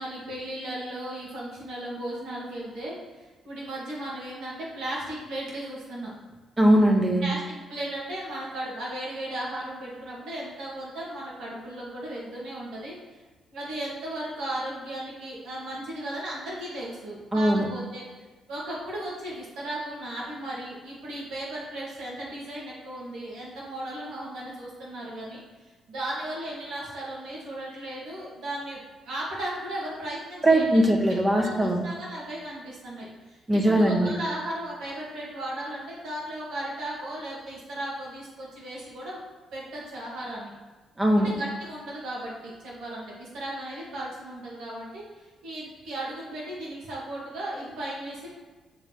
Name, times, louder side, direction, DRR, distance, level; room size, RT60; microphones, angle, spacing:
voice 1, 0.0-6.1 7.2-13.2 13.5-18.0 18.5-28.8 29.1-30.9 31.4-39.2 39.5-40.5 41.2-48.3, right 1 dB, 85° right, -6 dB, 2.0 m, -36 dB
voice 2, 6.6-7.3 17.3-17.7 30.4-31.8 33.5-34.2 41.0-41.3, right 1 dB, 20° right, 2 dB, 0.9 m, -20 dB
8.9 x 3.7 x 3.2 m, 1.3 s
cardioid pair, 90°, 0 cm